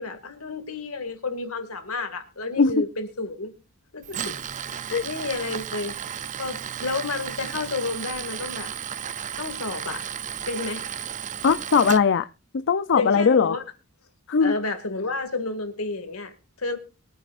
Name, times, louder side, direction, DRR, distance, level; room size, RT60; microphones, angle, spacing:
voice 1, 0.0-3.5 3.9-4.4 4.7-5.9 6.4-8.7 9.4-10.0 10.5-10.9 12.9-13.6 14.4-16.8, left 3 dB, 70° left, 2.2 m, -31 dB
Tools, 4.0-12.0, right 8 dB, 35° right, 0.5 m, -34 dB
voice 2, 11.4-12.3 12.5-13.6 14.3-14.5, left 5 dB, 55° left, 0.5 m, -20 dB
23.0 x 9.1 x 2.5 m
head